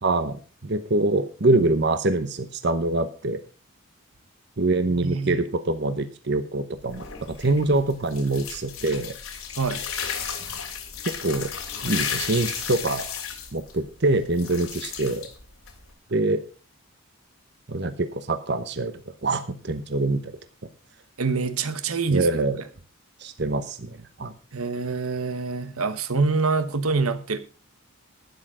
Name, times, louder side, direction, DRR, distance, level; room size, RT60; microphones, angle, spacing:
voice 1, 0.0-3.4 4.6-9.2 11.2-11.5 11.8-13.1 13.5-15.3 16.1-16.4 17.7-18.9 19.2-20.3 22.1-22.6 23.2-24.3, right 2 dB, 50° right, 0.9 m, -24 dB
voice 2, 5.0-5.4 9.6-9.8 21.2-22.3 24.5-27.4, right 4 dB, 85° right, 1.1 m, -25 dB
sound 1, 6.8-15.9, left 7 dB, 80° left, 2.8 m, -34 dB
12.0 x 10.0 x 5.0 m
head